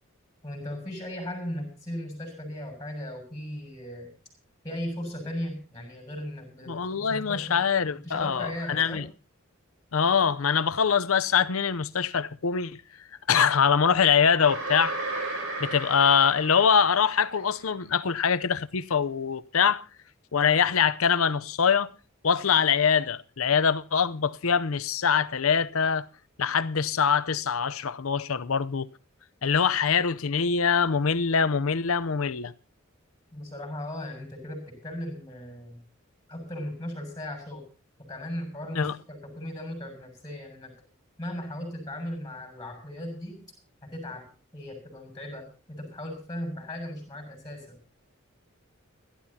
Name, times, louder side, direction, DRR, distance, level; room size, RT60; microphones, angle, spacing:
voice 1, 0.4-4.1 4.6-7.6 8.0-9.0 33.3-35.8 36.3-37.7 38.0-40.7 41.2-43.4 43.8-44.3 44.5-47.8, left 1 dB, 20° left, 6.8 m, -37 dB
voice 2, 6.7-9.0 9.9-12.8 13.3-15.2 15.6-19.8 20.3-21.9 22.2-26.1 26.4-28.9 29.4-32.5 38.8-38.9, left 6 dB, 80° left, 0.7 m, -24 dB
sound 1, 14.4-17.5, right 2 dB, 65° right, 4.0 m, -34 dB
29.5 x 11.5 x 2.8 m
head